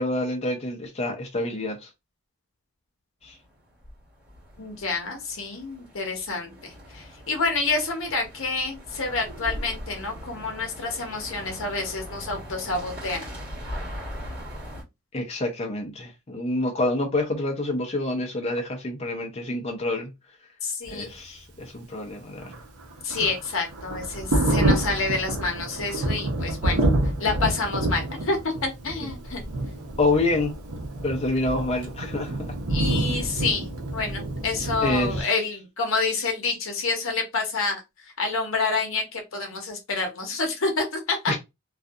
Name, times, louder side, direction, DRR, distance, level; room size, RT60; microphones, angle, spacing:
voice 1, 0.0-1.9 3.2-3.4 15.1-20.1 20.9-22.5 29.0-29.1 30.0-30.6 31.0-32.4 34.8-35.3 41.3-41.4, left 2 dB, 30° left, 0.5 m, -27 dB
sound 1, 3.2-14.8, equal, 45° right, 1.3 m, -40 dB
voice 2, 4.6-13.2 20.6-21.1 23.0-26.8 27.2-29.4 32.7-33.7 33.9-41.3, left 3 dB, 60° left, 0.8 m, -28 dB
Thunder, 22.4-35.2, right 1 dB, 85° right, 0.8 m, -27 dB
2.6 x 2.4 x 2.3 m
head